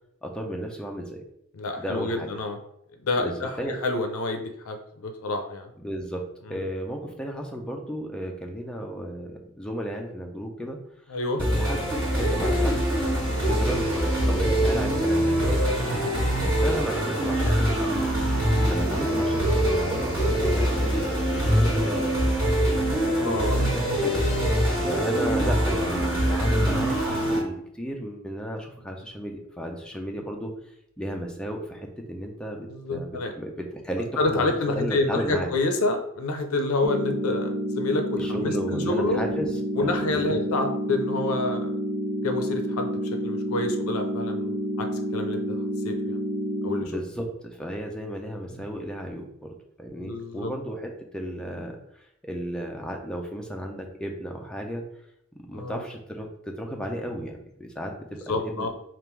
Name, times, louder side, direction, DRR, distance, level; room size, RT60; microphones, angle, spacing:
voice 1, 0.2-1.2 1.8-2.3 3.2-3.8 5.8-10.8 11.5-11.9 12.1-12.8 13.4-16.1 16.4-22.1 23.0-24.2 24.7-33.1 33.4-35.5 38.2-40.0 46.8-54.9 55.4-58.7, equal, 5° left, 1 dB, 0.5 m, -34 dB
voice 2, 1.5-2.6 3.0-5.7 6.5-6.6 11.1-11.4 16.5-16.7 23.1-23.6 32.7-33.3 34.2-39.2 39.7-41.7 42.2-45.6 45.8-46.2 46.6-46.9 50.0-50.5 55.5-55.8 58.3-58.7, left 2 dB, 80° left, 5 dB, 0.5 m, -28 dB
sound 1, 11.4-27.4, equal, 25° right, 1.4 m, -24 dB
sound 2, 36.8-46.8, right 1 dB, 55° right, 0.6 m, -29 dB
3.6 x 2.5 x 4.4 m, 0.75 s
head